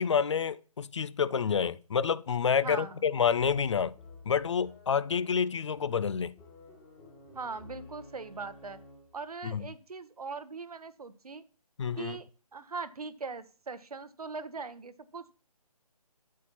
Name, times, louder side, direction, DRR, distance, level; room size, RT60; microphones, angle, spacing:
voice 1, 0.0-3.9 4.3-6.3 9.4-9.6 11.8-12.2, left 7 dB, 50° left, 0.4 m, -28 dB
voice 2, 2.6-3.1 7.3-8.8 9.1-11.4 12.0-15.3, right 4 dB, 75° right, 0.9 m, -40 dB
sound 1, 2.8-9.2, left 3 dB, 15° left, 1.9 m, -53 dB
8.4 x 8.2 x 2.9 m
figure-of-eight pair, 150°, 20 cm